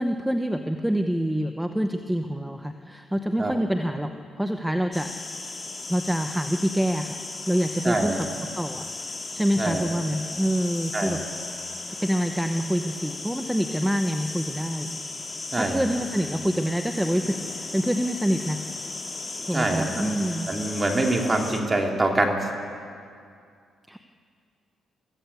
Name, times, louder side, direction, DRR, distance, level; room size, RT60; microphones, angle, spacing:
voice 1, 0.0-4.1 4.4-5.1 5.9-7.2 7.5-8.3 8.5-11.2 12.0-14.9 15.5-18.6 19.5-20.5 23.9-24.0, equal, 5° right, 6 dB, 0.9 m, -26 dB
sound 1, 4.9-21.6, left 3 dB, 25° left, 2.7 m, -36 dB
voice 2, 7.8-8.2 9.6-9.8 10.9-11.2 15.5-15.8 19.5-22.4, right 2 dB, 25° right, 2 dB, 3.1 m, -25 dB
23.0 x 15.5 x 8.3 m, 2.3 s
cardioid pair, 90°, 0 cm